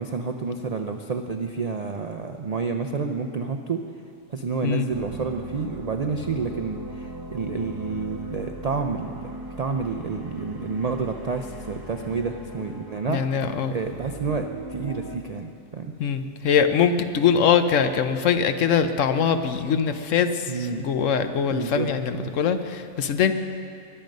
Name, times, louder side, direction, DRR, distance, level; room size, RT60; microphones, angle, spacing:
voice 1, 0.0-3.8 4.3-13.2 13.7-15.9 20.5-20.9 21.5-21.9 22.1-22.3, right 4 dB, 65° right, 6 dB, 0.3 m, -29 dB
sound 1, 4.9-15.2, right 1 dB, 20° right, 0.8 m, -38 dB
voice 2, 13.1-13.7 16.0-23.3, left 7 dB, 70° left, 9 dB, 1.1 m, -22 dB
22.5 x 7.7 x 5.3 m, 2.5 s
omnidirectional pair, 1.4 m